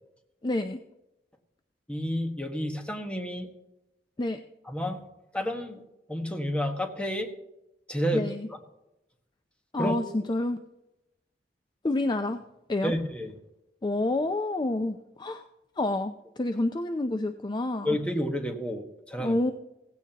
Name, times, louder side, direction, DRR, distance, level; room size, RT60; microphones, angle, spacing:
voice 1, 0.4-0.8 4.2-4.4 8.1-8.5 9.7-10.6 11.8-12.4 12.7-12.9 13.8-15.4 15.8-18.0 19.2-19.5, left 2 dB, 25° left, 8 dB, 0.5 m, -28 dB
voice 2, 1.9-3.5 4.6-5.1 5.3-5.8 6.1-7.3 7.9-8.6 9.7-10.0 12.8-13.3 17.8-19.4, equal, 5° left, 4 dB, 1.3 m, -30 dB
16.5 x 15.5 x 2.9 m, 0.90 s
head